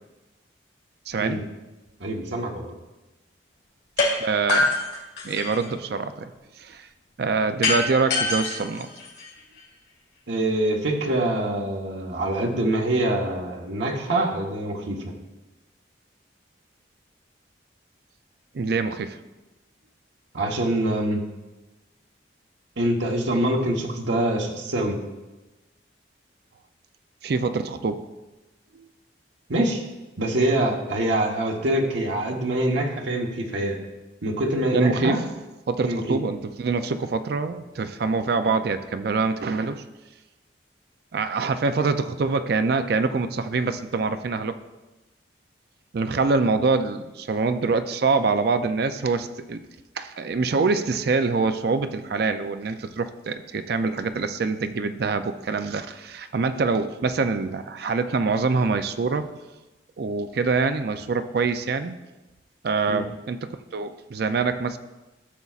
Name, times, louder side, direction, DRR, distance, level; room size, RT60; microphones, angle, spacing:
voice 1, 1.1-1.4 4.2-4.7 5.2-6.3 6.6-6.9 7.2-8.9 18.5-19.2 27.2-28.0 28.7-28.9 34.7-35.3 35.7-39.8 41.1-44.6 45.9-49.6 50.0-59.3 60.0-62.0 62.6-64.8, right 4 dB, 55° right, 9 dB, 0.4 m, -25 dB
voice 2, 2.0-2.8 10.3-15.1 20.3-21.2 22.8-25.0 29.5-29.8 30.2-33.8 34.2-35.2 35.8-36.2 62.9-63.0, right 1 dB, 70° right, 0 dB, 1.1 m, -25 dB
sound 1, 4.0-4.1 4.5-5.7 7.6-9.6, left 2 dB, 55° left, 2.3 m, -24 dB
13.5 x 6.9 x 2.4 m, 1.1 s
head